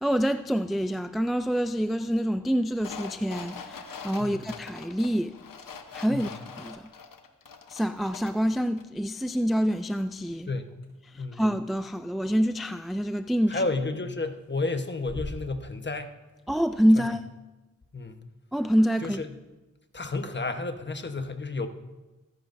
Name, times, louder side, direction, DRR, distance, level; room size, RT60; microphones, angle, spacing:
voice 1, 0.0-5.4 5.9-6.3 6.6-6.9 7.7-10.5 11.1-13.6 16.5-17.3 18.5-19.2, equal, ahead, 0.3 m, -26 dB
sound 1, 2.8-8.5 8.8-8.9, left 5 dB, 90° left, 1.0 m, -43 dB
sound 2, 10.8-10.9 11.7-11.8 13.3-13.7 14.0-14.5 14.8-16.1 16.4-16.5 16.6-16.9, left 2 dB, 55° left, 5.1 m, -42 dB
voice 2, 13.5-16.1 17.0-17.1 17.9-18.2 19.0-19.3 19.9-21.7, left 3 dB, 35° left, 1.1 m, -31 dB
21.5 x 11.0 x 2.6 m
cardioid pair, 60°, 32 cm